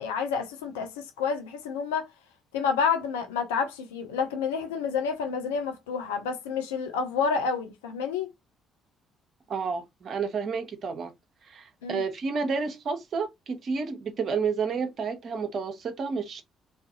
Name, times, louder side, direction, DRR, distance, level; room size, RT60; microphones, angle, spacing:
voice 1, 0.0-2.1 2.5-8.3 11.8-12.0, left 6 dB, 75° left, 0.3 m, -29 dB
voice 2, 9.5-11.1 11.4-16.4, right 5 dB, 50° right, 0.6 m, -30 dB
2.4 x 2.4 x 2.6 m
figure-of-eight pair, 45°, 0 cm